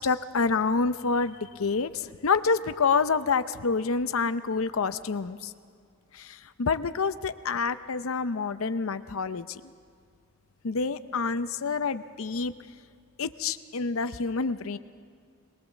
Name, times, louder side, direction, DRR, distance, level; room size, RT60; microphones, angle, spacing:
voice 1, 0.0-5.5 6.1-9.6 10.6-12.5 13.2-14.8, left 4 dB, 70° left, 11 dB, 0.7 m, -27 dB
22.5 x 21.0 x 7.2 m, 2.3 s
head